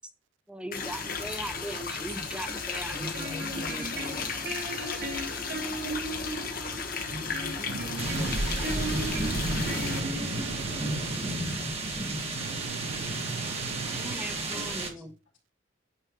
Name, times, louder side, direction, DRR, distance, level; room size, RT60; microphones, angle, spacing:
voice 1, 0.5-4.3 13.9-15.1, right 1 dB, 5° right, 0.6 m, -39 dB
sound 1, 0.7-10.0, left 5 dB, 50° left, 1.3 m, -35 dB
sound 2, 2.9-10.9, right 2 dB, 55° right, 0.9 m, -37 dB
voice 2, 7.7-11.2 12.3-14.2, right 5 dB, 70° right, 0.3 m, -40 dB
sound 3, 8.0-14.9, right 2 dB, 30° right, 1.4 m, -32 dB
voice 3, 14.4-15.1, left 3 dB, 90° left, 2.5 m, -60 dB
9.0 x 3.2 x 4.6 m
head